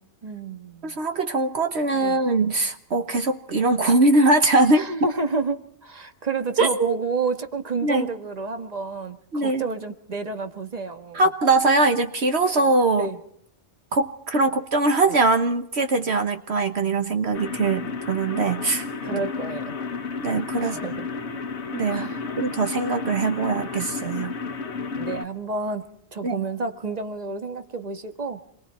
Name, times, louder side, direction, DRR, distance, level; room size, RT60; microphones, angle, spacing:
voice 1, 0.2-1.0 1.9-2.2 4.7-11.3 13.0-13.2 19.0-19.8 20.6-21.1 21.3-21.4 21.9-22.3 24.9-28.4, right 4 dB, 35° right, 7 dB, 1.7 m, -30 dB
voice 2, 0.8-4.8 6.6-7.0 7.8-8.1 9.3-9.6 11.1-13.1 13.9-17.8 18.1-19.2 20.2-20.8 21.7-22.1 22.4-24.3 26.2-26.3, right 3 dB, 65° right, 7 dB, 1.5 m, -22 dB
sound 1, 17.3-25.2, left 4 dB, 70° left, 1.5 m, -32 dB
27.5 x 22.5 x 4.4 m, 0.69 s
omnidirectional pair, 1.2 m